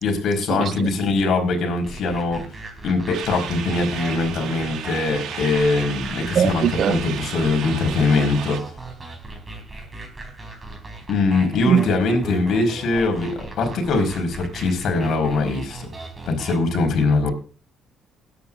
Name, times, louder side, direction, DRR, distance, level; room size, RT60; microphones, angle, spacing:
voice 1, 0.0-2.5 2.8-8.6 11.1-15.9 16.3-17.3, left 3 dB, 65° left, 4.4 m, -22 dB
sound 1, 1.8-16.6, right 2 dB, 20° right, 4.4 m, -38 dB
sound 2, 3.1-8.6, right 9 dB, 75° right, 1.6 m, -34 dB
voice 2, 6.4-7.0 11.7-11.8, right 8 dB, 55° right, 0.5 m, -19 dB
20.5 x 9.8 x 2.5 m
cardioid pair, 110°, 0 cm